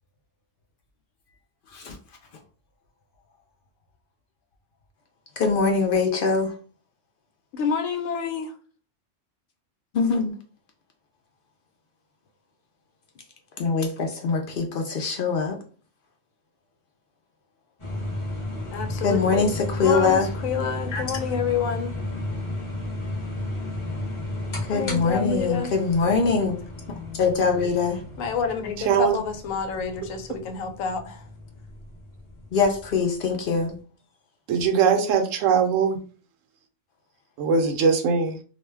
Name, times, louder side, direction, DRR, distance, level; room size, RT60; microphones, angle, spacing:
voice 1, 5.4-6.5 9.9-10.3 13.6-15.6 19.0-20.3 20.9-21.0 24.6-26.6 27.2-28.0 32.5-33.8, left 4 dB, 65° left, 0.5 m, -23 dB
voice 2, 7.5-8.5 18.7-22.0 24.7-25.7 28.2-31.2, left 6 dB, 90° left, 1.0 m, -28 dB
sound 1, 17.8-33.8, left 1 dB, 30° left, 0.8 m, -34 dB
voice 3, 28.9-29.2 34.5-36.0 37.4-38.4, right 6 dB, 80° right, 0.9 m, -21 dB
2.5 x 2.1 x 3.3 m
omnidirectional pair, 1.3 m